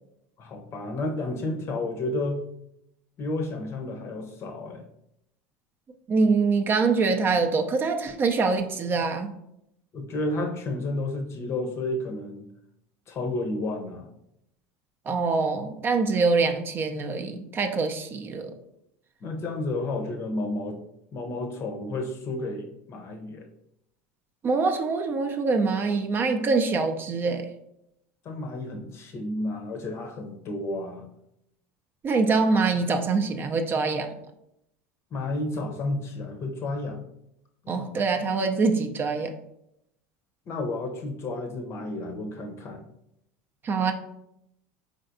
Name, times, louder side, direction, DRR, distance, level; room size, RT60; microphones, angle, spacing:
voice 1, 0.4-2.4 3.2-4.8 9.9-12.4 13.1-14.1 19.2-20.8 21.1-23.5 28.2-31.1 35.1-37.0 37.6-37.8 40.5-42.8, left 2 dB, 40° left, 4 dB, 0.7 m, -31 dB
voice 2, 6.1-9.3 15.1-18.5 24.4-27.5 32.0-34.1 37.7-39.3 43.6-43.9, right 4 dB, 30° right, 5 dB, 0.5 m, -24 dB
3.9 x 3.3 x 2.6 m, 0.79 s
hypercardioid pair, 80°, 7 cm